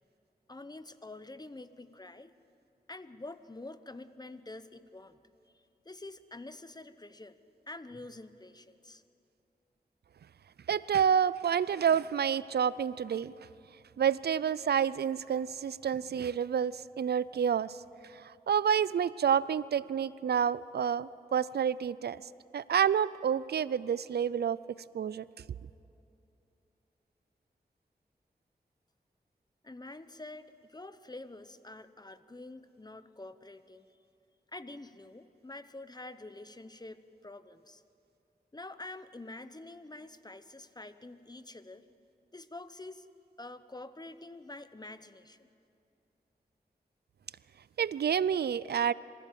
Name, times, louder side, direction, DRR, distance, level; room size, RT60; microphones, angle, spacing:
voice 1, 0.5-2.3 2.9-5.2 5.5-7.3 7.7-9.0 29.6-34.0 34.5-37.8 38.5-41.9 42.3-43.1 43.4-45.5, left 2 dB, 25° left, 12 dB, 0.9 m, -47 dB
voice 2, 10.7-13.3 14.0-17.8 18.1-22.2 22.5-25.2 47.8-48.9, right 8 dB, 85° right, 19 dB, 0.4 m, -29 dB
24.5 x 15.5 x 7.6 m, 2.7 s
wide cardioid pair, 60°, 16 cm